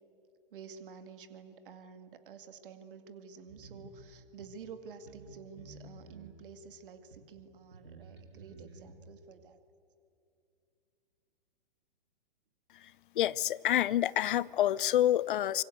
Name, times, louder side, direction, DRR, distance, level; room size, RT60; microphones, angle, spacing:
voice 1, 0.5-9.6, right 6 dB, 60° right, 2.2 m, -50 dB
sound 1, 3.5-3.9 4.4-4.5 5.0-5.3 5.6-6.4 7.1-7.2 7.7-8.9, right 3 dB, 85° right, 6.1 m, -52 dB
voice 2, 13.2-15.6, left 12 dB, 55° left, 0.7 m, -27 dB
25.0 x 23.5 x 8.1 m
figure-of-eight pair, 115°, 30 cm